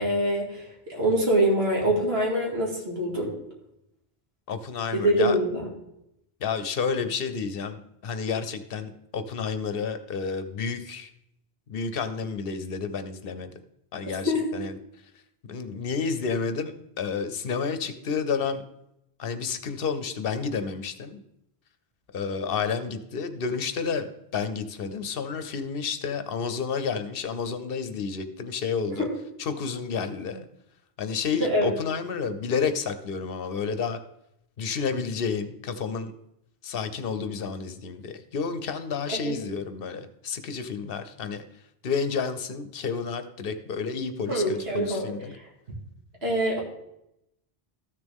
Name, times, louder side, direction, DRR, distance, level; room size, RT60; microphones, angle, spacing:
voice 1, 0.0-3.3 4.9-5.6 14.3-14.5 29.0-29.1 31.4-31.7 39.1-39.4 44.3-45.0 45.3-45.4 46.2-46.6, right 1 dB, 80° right, -2 dB, 2.5 m, -24 dB
voice 2, 4.5-5.4 6.4-11.1 11.7-13.5 13.9-14.8 15.4-18.6 19.2-21.2 22.1-29.1 29.4-30.5 31.0-34.0 34.6-36.1 36.6-41.4 41.8-45.4, left 5 dB, 65° left, 10 dB, 0.9 m, -30 dB
13.0 x 6.6 x 3.6 m, 0.82 s
omnidirectional pair, 1.0 m